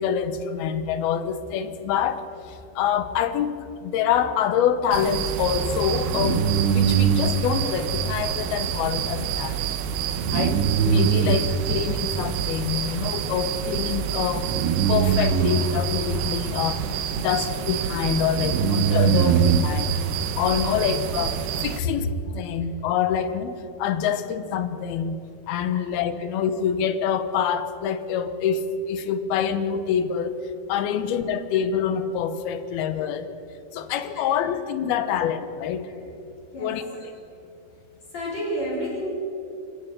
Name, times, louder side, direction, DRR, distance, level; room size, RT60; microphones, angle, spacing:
voice 1, 0.0-3.5 3.8-9.7 10.3-14.5 14.9-19.9 20.4-22.1 22.3-25.2 25.5-30.4 30.7-33.3 33.7-35.9 36.6-36.8, left 8 dB, 75° left, 11 dB, 2.7 m, -26 dB
sound 1, 4.9-21.8, right 7 dB, 80° right, 3.1 m, -24 dB
voice 2, 34.1-34.5 35.1-35.2 35.8-36.0 36.5-37.1 38.1-39.1, equal, 40° left, -3 dB, 5.1 m, -33 dB
27.5 x 15.0 x 6.7 m, 2.7 s
omnidirectional pair, 4.8 m